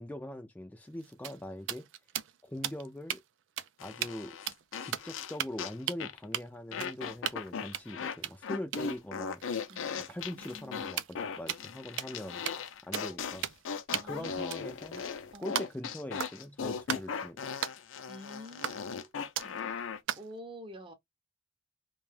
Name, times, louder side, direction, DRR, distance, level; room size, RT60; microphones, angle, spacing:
voice 1, 0.0-1.9 2.4-3.2 3.8-4.3 4.8-9.4 10.1-12.4 12.9-13.5 13.9-15.0 15.4-17.5, left 1 dB, 10° left, 0.3 m, -42 dB
sound 1, 0.9-3.2 3.6-3.7 4.0-4.2 4.5-5.1 5.4-5.6 5.9-6.0 6.3-6.4 6.8-7.5 7.7-11.7 12.0-12.2 12.5-12.7 12.9-13.1 13.4-13.7 13.9-15.9 16.2-16.5 16.9-17.1 17.6-17.8 18.6-19.0 19.4-19.6 20.1-20.3, right 10 dB, 70° right, 0.4 m, -37 dB
sound 2, 3.8-5.7 6.0-6.2 6.7-8.2 8.4-20.0, left 6 dB, 80° left, 0.5 m, -38 dB
voice 2, 9.7-10.9 12.9-13.2 13.9-14.6 15.3-15.6 18.1-19.1 19.4-20.9, equal, 25° right, 0.6 m, -49 dB
2.5 x 2.2 x 3.2 m
head